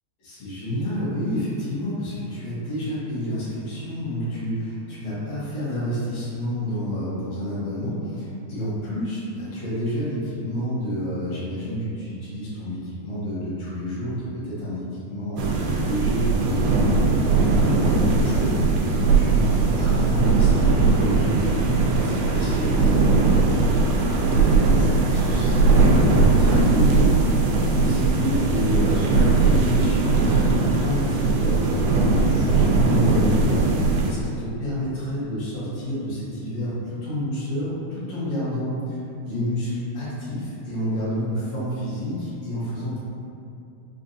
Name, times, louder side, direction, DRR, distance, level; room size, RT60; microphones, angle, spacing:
voice 1, 0.2-27.3 27.7-39.0 39.2-43.0, equal, 70° left, -10 dB, 1.7 m, -29 dB
sound 1, 15.4-34.1, right 3 dB, 90° right, 2.6 m, -19 dB
5.9 x 2.3 x 2.6 m, 2.6 s
omnidirectional pair, 4.5 m